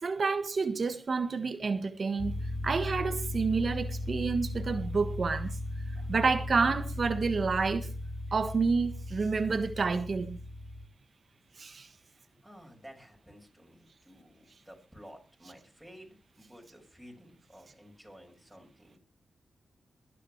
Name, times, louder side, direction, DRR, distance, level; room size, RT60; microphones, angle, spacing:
voice 1, 0.0-5.6 6.1-7.9 8.3-10.4 11.6-11.9, right 4 dB, 55° right, 1.4 m, -29 dB
sound 1, 2.2-10.8, left 1 dB, 50° left, 1.7 m, -37 dB
voice 2, 12.2-19.0, equal, ahead, 6.4 m, -53 dB
21.0 x 10.0 x 3.3 m
cardioid pair, 65°, 0 cm